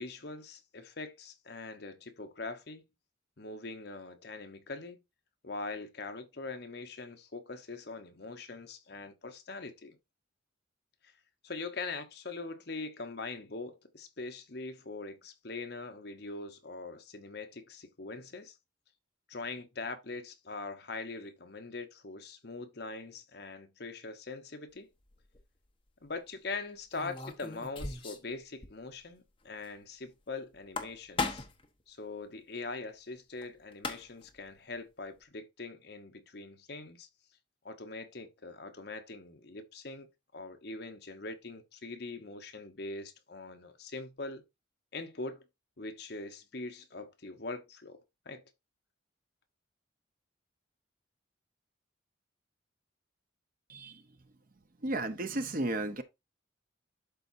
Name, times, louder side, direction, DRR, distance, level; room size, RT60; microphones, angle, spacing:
voice 1, 0.0-2.8 3.4-5.0 5.4-10.0 11.4-18.6 19.3-24.9 26.0-31.5 31.9-37.1 37.6-44.4 44.9-45.4 45.8-48.0 48.3-48.4, left 3 dB, 55° left, 1.0 m, -42 dB
sound 1, 25.1-25.4 26.9-28.3 28.6-28.7 29.0-29.1 30.5-31.7 33.4-33.5 33.7-34.3, left 4 dB, 25° left, 1.0 m, -37 dB
voice 2, 53.7-54.0 54.8-56.0, right 2 dB, 45° right, 0.8 m, -33 dB
12.0 x 4.2 x 2.6 m
head